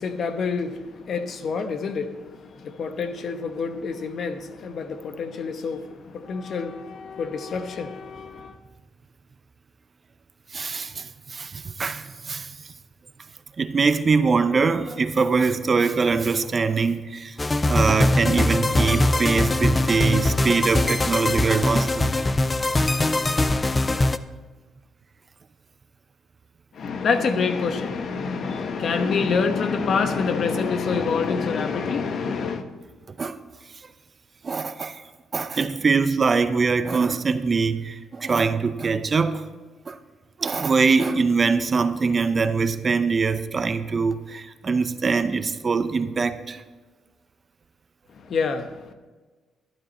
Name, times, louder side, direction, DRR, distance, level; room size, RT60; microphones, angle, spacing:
voice 1, 0.0-8.6 26.7-32.6 48.1-48.9, left 5 dB, 60° left, 1.0 m, -27 dB
voice 2, 10.5-12.7 13.6-17.4 17.7-22.2 33.2-33.4 34.4-35.0 35.3-39.4 39.9-40.0 40.4-46.6, right 4 dB, 35° right, 0.7 m, -23 dB
sound 1, 17.4-24.2, left 2 dB, 25° left, 0.5 m, -22 dB
12.0 x 11.5 x 4.4 m
cardioid pair, 90°, 0 cm